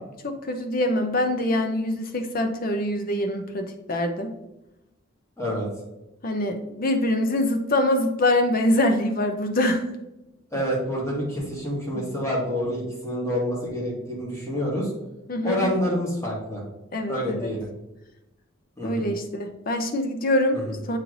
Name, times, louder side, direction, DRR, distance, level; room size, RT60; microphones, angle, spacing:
voice 1, 0.2-4.3 6.2-9.9 12.0-12.1 15.3-15.7 16.9-17.5 18.8-20.6 20.9-21.0, left 1 dB, 45° left, 5 dB, 0.8 m, -24 dB
voice 2, 5.4-5.7 10.5-14.9 15.4-16.6 17.1-17.7 18.8-19.1 20.5-20.8, equal, 15° left, -5 dB, 2.0 m, -27 dB
7.5 x 3.2 x 3.9 m, 0.93 s
head